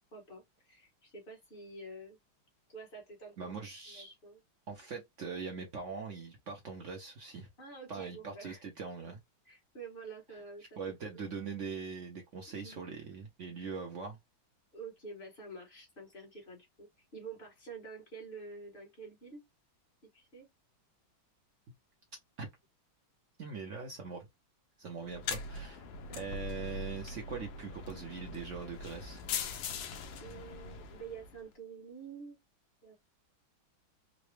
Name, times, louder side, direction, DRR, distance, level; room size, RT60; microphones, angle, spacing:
voice 1, 0.1-2.2 2.7-3.5 3.9-4.4 7.6-8.6 9.4-11.2 12.5-12.8 14.7-19.4 20.1-20.5 26.1-26.3 30.2-32.4 32.8-32.9, right 4 dB, 30° left, 1.2 m, -48 dB
voice 2, 3.4-4.2 4.7-7.5 7.9-9.2 10.8-14.2 22.4-22.5 23.4-24.3 24.8-25.8 26.2-29.2, right 5 dB, 70° right, 0.7 m, -42 dB
sound 1, 25.0-31.4, left 5 dB, 75° left, 1.2 m, -41 dB
3.9 x 2.1 x 3.1 m
omnidirectional pair, 2.2 m